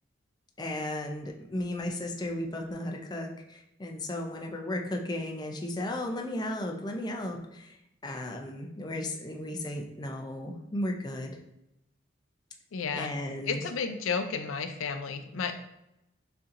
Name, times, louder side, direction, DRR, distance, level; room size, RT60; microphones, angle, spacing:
voice 1, 0.6-7.8 8.0-11.4 12.9-13.6, left 1 dB, 20° left, 2 dB, 0.5 m, -35 dB
voice 2, 12.7-13.1 13.5-15.5, left 5 dB, 90° left, 7 dB, 0.5 m, -32 dB
6.6 x 2.8 x 2.5 m, 0.87 s
head